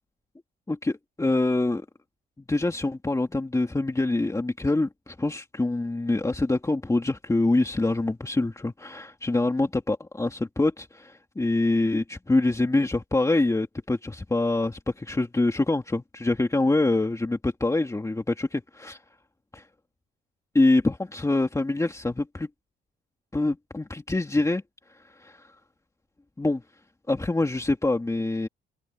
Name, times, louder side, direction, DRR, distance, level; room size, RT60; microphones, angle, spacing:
voice 1, 0.7-1.9 2.5-19.0 19.5-19.7 20.5-22.5 23.3-24.6 24.9-25.5 26.4-26.6 27.1-28.5, left 2 dB, 15° left, 2.5 m, -25 dB
cardioid pair, 90°, 20 cm